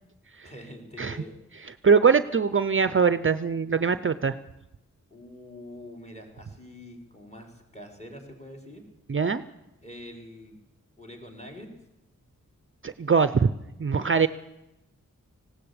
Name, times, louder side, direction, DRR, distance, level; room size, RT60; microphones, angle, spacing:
voice 1, 0.4-1.4 5.1-8.8 9.8-10.6 11.0-11.7, left 1 dB, 20° left, 3 dB, 4.9 m, -45 dB
voice 2, 1.8-4.3 9.1-9.4 12.8-13.5 13.8-14.3, right 5 dB, 40° right, 13 dB, 0.6 m, -22 dB
19.0 x 16.5 x 8.7 m, 0.93 s
wide cardioid pair, 75°, 33 cm